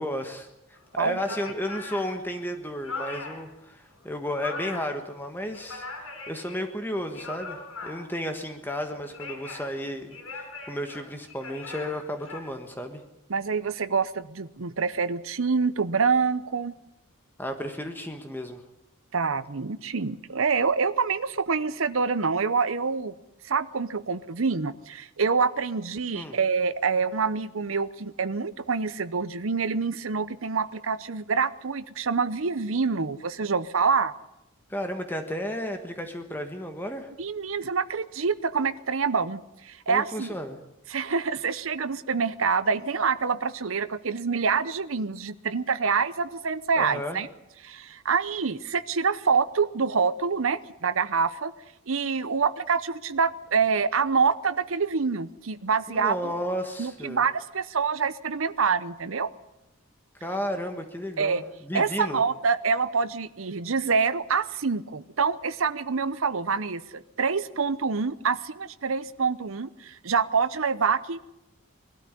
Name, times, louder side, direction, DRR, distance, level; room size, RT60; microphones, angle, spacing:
voice 1, 0.0-5.8 6.3-13.0 17.4-18.6 26.1-26.4 34.7-37.1 39.9-40.6 46.7-47.2 55.9-57.2 60.1-62.2, equal, 10° left, 6 dB, 1.4 m, -33 dB
sound 1, 0.8-0.9 1.2-3.5 3.9-5.0 5.4-6.6 7.0-8.3 8.9-9.7 10.1-12.4, left 3 dB, 85° left, 5.9 m, -39 dB
voice 2, 13.3-16.7 19.1-23.1 23.4-34.1 37.2-40.3 40.9-47.3 47.6-51.5 51.9-56.3 56.8-59.3 61.2-61.4 61.7-71.2, right 5 dB, 80° right, 14 dB, 0.8 m, -26 dB
21.5 x 13.0 x 9.9 m, 0.91 s
head